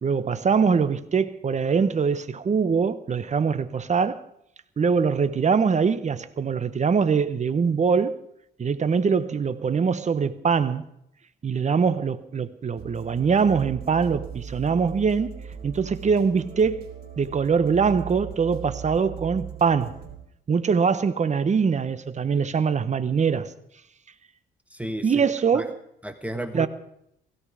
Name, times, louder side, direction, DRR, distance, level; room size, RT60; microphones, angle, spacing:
voice 1, 0.0-4.2 4.8-8.2 8.6-10.8 11.4-16.9 17.2-19.9 20.5-23.5 25.0-25.8 26.5-26.7, right 6 dB, 35° right, 1.1 m, -23 dB
sound 1, 12.8-20.2, right 9 dB, 55° right, 4.1 m, -39 dB
voice 2, 24.7-25.6 26.0-26.7, right 1 dB, 5° right, 1.3 m, -33 dB
17.0 x 16.5 x 5.0 m
cardioid pair, 90°, 20 cm